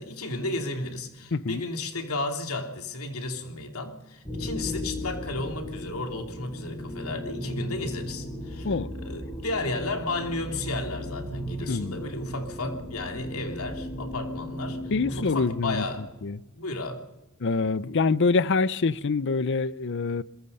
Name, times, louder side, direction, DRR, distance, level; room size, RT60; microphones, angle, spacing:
voice 1, 0.0-16.0 16.5-17.0, left 2 dB, 85° left, 2.9 m, -33 dB
voice 2, 1.3-1.6 8.6-8.9 11.7-12.0 14.9-15.8 16.2-16.4 17.4-20.2, left 4 dB, 55° left, 0.6 m, -25 dB
sound 1, 4.2-16.2, left 1 dB, 20° left, 6.6 m, -36 dB
23.5 x 21.5 x 5.5 m
head